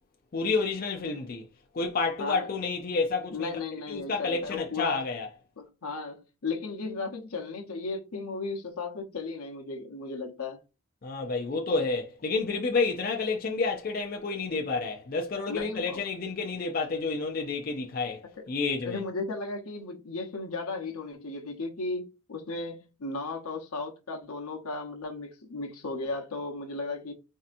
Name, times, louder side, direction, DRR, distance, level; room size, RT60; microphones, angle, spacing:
voice 1, 0.3-1.4 1.7-3.6 3.9-5.3 11.0-18.2 18.5-19.0, left 4 dB, 40° left, 0.4 m, -29 dB
voice 2, 3.3-5.0 5.6-10.6 15.5-16.0 18.8-27.1, left 3 dB, 85° left, 0.9 m, -35 dB
4.4 x 2.7 x 2.5 m
head